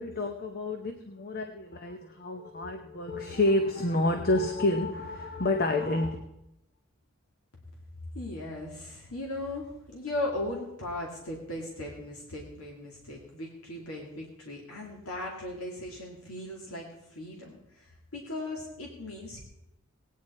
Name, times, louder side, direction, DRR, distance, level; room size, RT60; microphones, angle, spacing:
voice 1, 0.0-6.2, left 2 dB, 45° left, 5 dB, 0.8 m, -29 dB
voice 2, 8.1-19.4, left 1 dB, 90° left, -1 dB, 2.3 m, -38 dB
18.0 x 9.4 x 4.2 m, 0.84 s
head